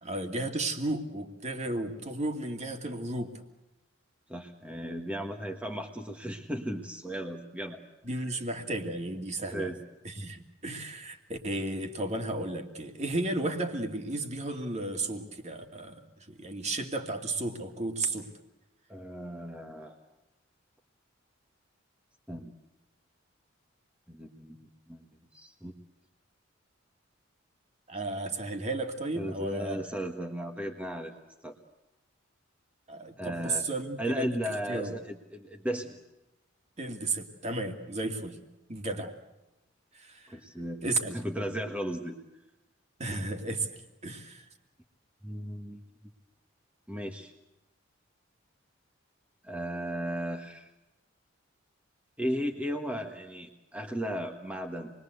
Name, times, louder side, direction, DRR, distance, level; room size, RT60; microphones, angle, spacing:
voice 1, 0.0-3.3 8.0-9.7 10.0-16.0 16.3-18.3 27.9-29.8 32.9-34.4 34.7-35.0 36.8-38.4 38.7-39.1 39.9-40.3 40.8-41.2 43.0-43.7 44.0-44.4, right 2 dB, 35° right, 5 dB, 2.5 m, -33 dB
voice 2, 4.3-7.8 9.5-9.8 18.9-20.0 22.3-22.5 24.1-25.0 25.3-25.7 29.1-31.2 31.4-31.5 33.2-33.7 34.0-36.0 40.3-42.2 45.2-45.8 46.9-47.3 49.4-50.7 52.2-54.9, equal, 5° right, 2 dB, 1.5 m, -35 dB
28.0 x 22.0 x 8.1 m, 0.98 s
head